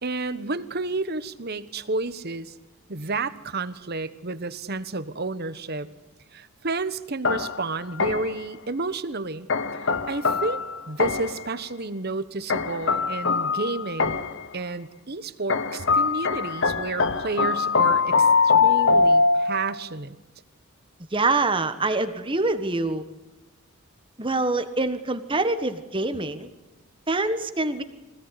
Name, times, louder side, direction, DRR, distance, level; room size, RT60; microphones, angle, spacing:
voice 1, 0.0-2.5 2.9-5.9 6.3-9.5 9.8-14.2 14.5-20.1, right 3 dB, 45° right, 13 dB, 1.2 m, -31 dB
sound 1, 7.2-8.5 9.5-11.5 12.5-14.5 15.5-19.8, left 4 dB, 55° left, 1.1 m, -23 dB
voice 2, 21.1-23.0 24.2-26.5 27.1-27.8, right 2 dB, 25° right, 10 dB, 1.5 m, -25 dB
25.0 x 17.0 x 9.8 m, 1.1 s
head